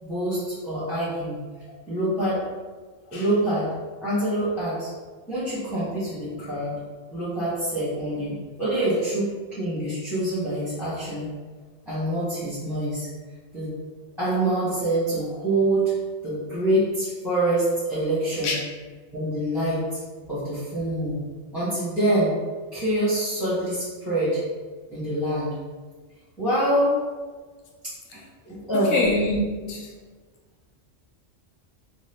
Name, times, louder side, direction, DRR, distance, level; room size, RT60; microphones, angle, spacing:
voice 1, 0.0-1.4 1.9-2.5 3.1-3.7 4.0-4.9 5.3-6.7 7.1-11.3 11.9-13.1 13.5-13.7 14.2-15.9 16.2-18.5 19.1-20.0 20.3-21.2 21.5-22.3 22.7-24.4 24.9-25.6 26.4-27.0 28.4-29.1, right 1 dB, ahead, -11 dB, 0.7 m, -25 dB
voice 2, 28.7-29.9, left 2 dB, 80° left, -1 dB, 1.0 m, -25 dB
2.8 x 2.3 x 3.4 m, 1.4 s
omnidirectional pair, 1.3 m